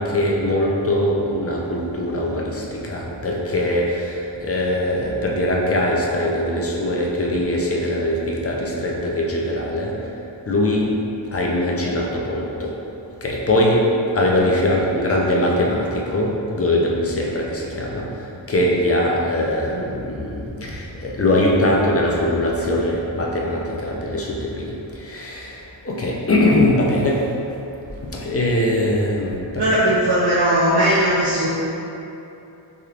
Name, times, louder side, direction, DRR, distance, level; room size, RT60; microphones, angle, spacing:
voice 1, 0.0-9.9 10.5-10.9 11.3-12.7 13.2-13.8 14.1-18.1 18.5-27.2 28.0-29.8, left 1 dB, 30° left, -3 dB, 0.5 m, -21 dB
voice 2, 29.5-31.5, right 1 dB, 60° right, -10 dB, 0.6 m, -18 dB
3.4 x 2.9 x 2.4 m, 2.9 s
wide cardioid pair, 70°, 46 cm